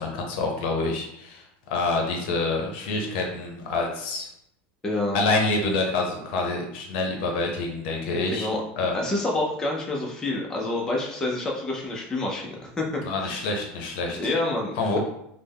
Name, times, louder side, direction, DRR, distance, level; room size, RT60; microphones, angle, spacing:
voice 1, 0.0-4.3 5.1-8.5 8.8-9.0 13.0-14.2 14.8-15.0, left 3 dB, 70° left, 1 dB, 0.6 m, -27 dB
voice 2, 4.8-5.2 8.3-8.6 8.9-13.5 14.1-15.0, left 2 dB, 10° left, -2 dB, 0.4 m, -28 dB
3.2 x 2.0 x 3.4 m, 0.76 s
supercardioid pair, 145°, 6 cm